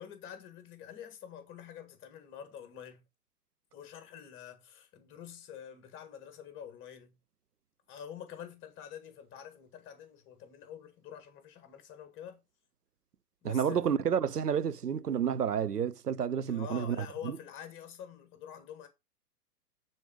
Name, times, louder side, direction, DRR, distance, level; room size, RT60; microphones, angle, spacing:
voice 1, 0.0-3.0 3.7-7.2 7.9-12.4 13.4-13.8 16.5-18.9, left 9 dB, 25° left, 1.8 m, -47 dB
voice 2, 13.4-17.4, right 8 dB, 80° right, 0.7 m, -30 dB
9.4 x 4.3 x 5.1 m
figure-of-eight pair, 105°, 47 cm